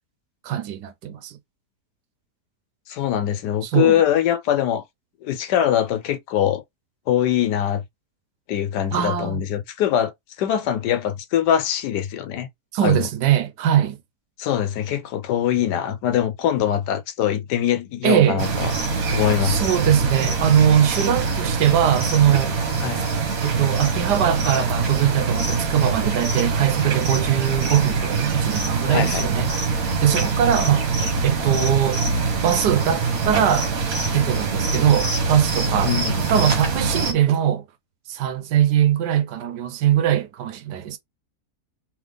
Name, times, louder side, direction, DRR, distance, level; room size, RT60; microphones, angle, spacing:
voice 1, 0.4-1.4 3.6-4.0 8.9-9.4 12.7-14.0 18.0-18.4 19.4-22.6 23.4-29.5 30.0-30.9 31.2-32.0 32.4-33.7 34.1-37.6 38.1-41.0, right 10 dB, 85° right, 1.3 m, -21 dB
voice 2, 2.9-4.8 5.2-6.6 7.1-7.8 8.5-10.1 10.4-12.5 12.8-13.1 14.4-18.7 19.1-19.7 22.8-23.0 28.9-29.2 35.8-36.2, left 10 dB, 85° left, 1.2 m, -22 dB
sound 1, 18.4-37.1, right 4 dB, 60° right, 1.7 m, -24 dB
3.8 x 3.2 x 3.3 m
omnidirectional pair, 1.7 m